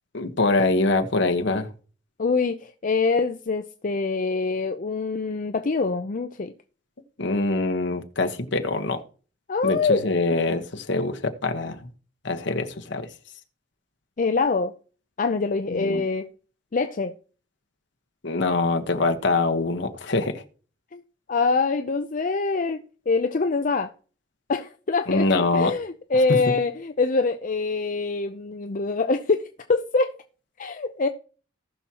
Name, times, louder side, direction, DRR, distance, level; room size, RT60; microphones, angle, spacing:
voice 1, 0.1-1.7 7.2-9.0 9.6-11.8 12.2-13.1 15.7-16.0 18.2-20.4 25.1-25.7, left 2 dB, 65° left, 1.2 m, -24 dB
voice 2, 2.2-6.5 9.5-10.0 14.2-14.7 15.2-16.3 16.7-17.1 20.9-21.0 21.3-22.8 23.1-23.9 24.5-30.1 30.6-31.1, left 4 dB, 45° left, 0.5 m, -24 dB
18.5 x 6.2 x 2.9 m
head